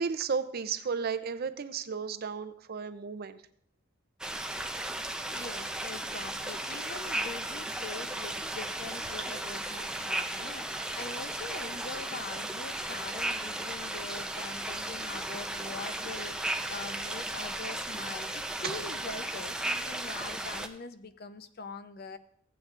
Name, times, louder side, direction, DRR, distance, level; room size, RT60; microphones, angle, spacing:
voice 1, 0.0-3.4 18.6-18.8, right 5 dB, 55° right, 12 dB, 0.5 m, -33 dB
sound 1, 4.2-20.7, right 1 dB, 5° right, 0.5 m, -35 dB
voice 2, 5.3-22.2, left 4 dB, 55° left, 11 dB, 0.6 m, -43 dB
15.5 x 8.8 x 2.5 m, 0.66 s
head